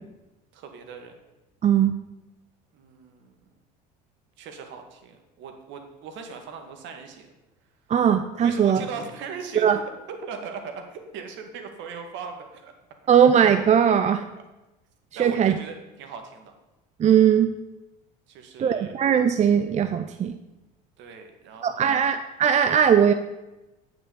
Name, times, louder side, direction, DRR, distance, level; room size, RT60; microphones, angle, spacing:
voice 1, 0.5-1.2 2.7-3.4 4.4-7.3 8.4-9.8 10.1-12.7 13.0-13.1 13.9-14.0 15.1-16.5 18.3-18.9 21.0-22.1, right 5 dB, 65° right, 5 dB, 2.0 m, -39 dB
voice 2, 1.6-1.9 7.9-8.8 9.6-9.8 13.1-14.2 15.2-15.5 17.0-17.5 18.6-20.3 21.6-23.1, right 8 dB, 35° right, 9 dB, 0.6 m, -19 dB
9.9 x 6.1 x 7.1 m, 1.0 s
supercardioid pair, 85°, 21 cm